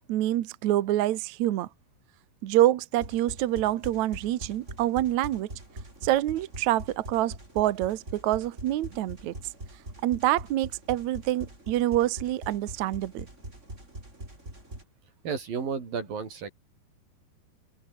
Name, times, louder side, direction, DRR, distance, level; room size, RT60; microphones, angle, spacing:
voice 1, 0.0-1.7 2.4-5.5 6.0-9.3 10.0-13.3, right 14 dB, 75° right, 1.7 m, -26 dB
sound 1, 2.9-14.8, right 1 dB, 15° right, 7.7 m, -43 dB
voice 2, 15.2-16.5, right 6 dB, 60° right, 6.3 m, -32 dB
open air
omnidirectional pair, 4.8 m